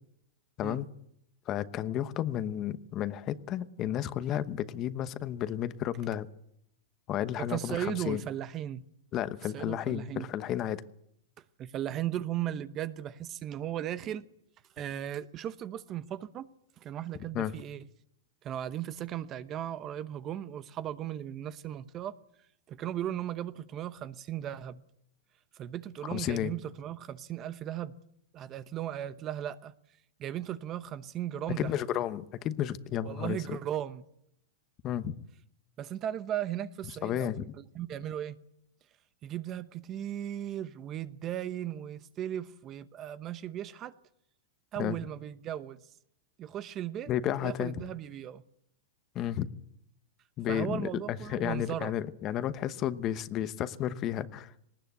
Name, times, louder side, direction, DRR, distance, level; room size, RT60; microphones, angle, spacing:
voice 1, 1.5-6.3 7.1-8.2 9.1-10.8 17.3-17.5 26.0-26.5 31.6-33.6 34.8-35.2 37.0-37.5 44.8-45.0 47.1-47.8 49.1-49.5 50.4-54.6, left 11 dB, 35° left, 1.0 m, -32 dB
voice 2, 7.4-8.8 9.5-10.3 11.6-14.2 14.8-16.5 16.8-17.8 18.4-22.1 22.7-24.8 25.5-27.9 28.3-29.7 30.2-31.7 33.0-34.0 35.8-37.3 37.7-38.3 39.2-43.9 44.7-45.8 46.4-47.1 47.4-48.4 50.5-51.9, right 11 dB, 30° right, 0.9 m, -36 dB
19.0 x 18.5 x 8.2 m
hypercardioid pair, 130°, 0 cm